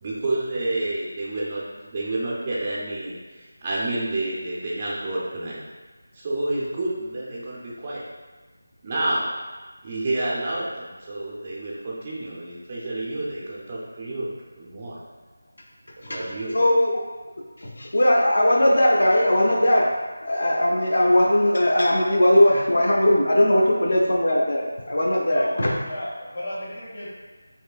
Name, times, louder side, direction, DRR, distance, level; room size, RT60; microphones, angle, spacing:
voice 1, 0.0-5.6 6.1-8.0 8.8-9.3 9.8-14.3 14.6-15.0 16.1-16.6, right 2 dB, 20° right, -5 dB, 0.3 m, -29 dB
voice 2, 16.5-17.0 17.6-19.9 20.2-25.8, left 1 dB, 60° left, -2 dB, 0.5 m, -19 dB
voice 3, 25.2-27.1, left 1 dB, 35° left, -7 dB, 1.0 m, -34 dB
4.4 x 2.6 x 2.3 m, 1.3 s
figure-of-eight pair, 175°, 0 cm